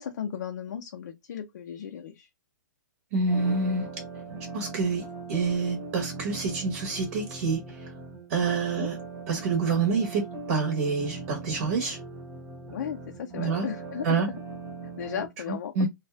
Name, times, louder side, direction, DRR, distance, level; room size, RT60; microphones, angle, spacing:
voice 1, 0.0-2.3 8.5-8.9 12.7-14.4 15.0-15.9, left 8 dB, 65° left, 0.4 m, -36 dB
voice 2, 3.1-3.9 4.5-5.0 5.3-7.8 8.3-9.0 9.3-12.0 13.3-13.7 14.0-14.3 15.7-15.9, right 4 dB, 45° right, 0.9 m, -27 dB
sound 1, 3.3-15.3, right 3 dB, 20° right, 0.9 m, -40 dB
2.7 x 2.3 x 3.1 m
hypercardioid pair, 155°, 10 cm